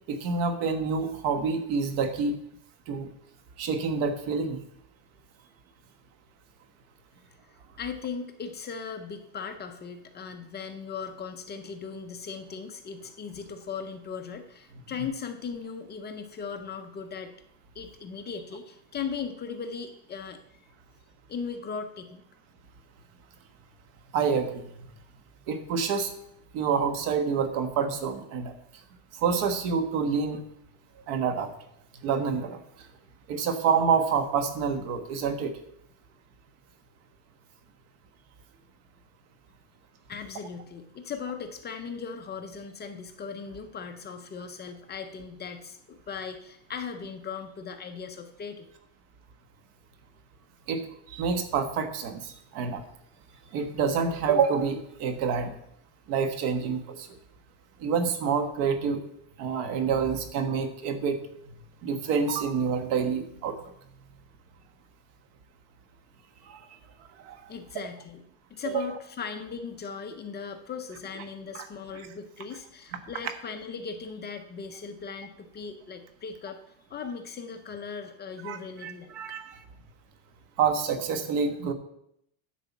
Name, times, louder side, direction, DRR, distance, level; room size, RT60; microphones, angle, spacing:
voice 1, 0.1-2.3 2.9-3.1 3.6-4.6 24.1-24.6 25.5-26.1 26.5-28.5 29.2-30.4 31.1-31.5 32.0-32.6 33.3-35.5 50.7-52.8 53.5-55.5 56.1-57.1 57.8-59.0 59.4-61.2 61.8-63.6 66.5-66.6 67.2-67.4 68.6-68.8 78.4-79.6 80.6-81.7, right 6 dB, 85° right, 8 dB, 1.5 m, -27 dB
voice 2, 7.8-17.3 17.7-20.6 21.3-22.2 40.1-48.7 67.5-68.2 68.5-76.6 76.9-79.2, left 6 dB, 20° left, 6 dB, 0.5 m, -38 dB
10.0 x 4.8 x 7.3 m, 0.74 s
cardioid pair, 170°, 47 cm